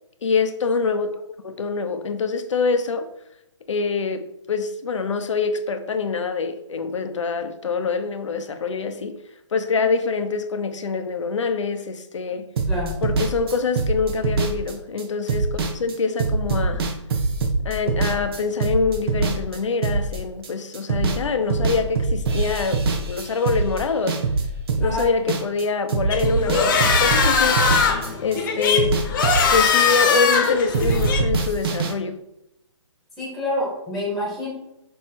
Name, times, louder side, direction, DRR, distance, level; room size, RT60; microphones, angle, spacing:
voice 1, 0.2-3.1 3.7-9.2 9.5-12.5 13.0-16.9 17.6-24.2 24.8-27.6 28.2-29.0 29.5-32.2, left 4 dB, 70° left, 0.9 m, -25 dB
sound 1, 12.6-20.5 20.7-21.2 21.5-25.6 25.9-28.4 28.6-30.5 30.7-31.9, right 4 dB, 50° right, 1.2 m, -24 dB
voice 2, 12.7-13.0 24.8-25.1 33.2-34.5, left 1 dB, ahead, 1.6 m, -27 dB
sound 2, 26.1-31.2, left 5 dB, 40° left, 1.2 m, -20 dB
6.4 x 3.2 x 4.5 m
hypercardioid pair, 150°, 16 cm